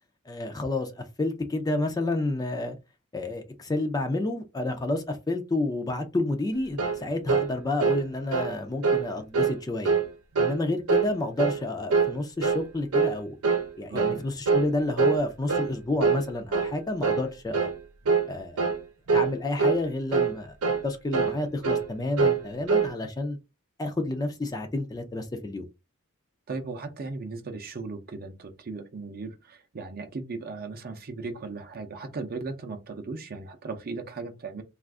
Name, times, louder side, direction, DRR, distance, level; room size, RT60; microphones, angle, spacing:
voice 1, 0.3-2.8 3.1-10.0 10.4-13.4 13.7-17.7 18.3-18.7 19.1-20.6 20.8-23.4 23.8-25.6, left 2 dB, 15° left, 0.4 m, -30 dB
sound 1, 6.8-7.0 7.3-7.5 7.8-8.0 8.3-8.5 8.8-9.1 9.3-9.6 9.9-10.1 10.4-10.6 10.9-11.1 11.4-11.6 11.9-12.1 12.4-12.6 12.9-13.2 13.4-13.7 14.0-14.2 14.5-14.7 15.0-15.2 15.5-15.7 16.0-16.2 16.5-16.7 17.0-17.3 17.5-17.8 18.1-18.3 18.6-18.8 19.1-19.3 19.6-19.8 20.1-20.4 20.6-20.8 21.1-21.4 21.6-21.9 22.2-22.4 22.7-22.9, right 5 dB, 85° right, 0.8 m, -24 dB
voice 2, 26.5-34.6, right 3 dB, 45° right, 0.6 m, -37 dB
2.4 x 2.4 x 3.4 m
head